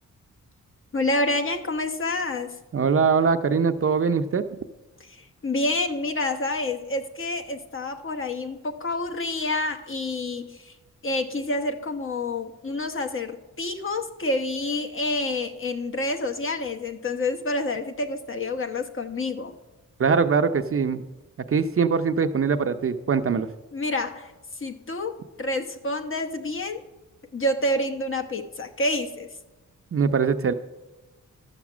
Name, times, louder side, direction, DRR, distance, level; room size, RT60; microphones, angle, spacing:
voice 1, 0.9-2.6 5.1-10.7 11.0-19.6 23.7-24.3 24.6-26.8 27.3-29.3, left 2 dB, 40° left, 5 dB, 1.0 m, -28 dB
voice 2, 2.7-4.4 20.0-21.1 21.5-23.5 29.9-30.5, right 5 dB, 45° right, 9 dB, 0.6 m, -22 dB
12.5 x 6.0 x 7.3 m, 1.1 s
wide cardioid pair, 110°, 31 cm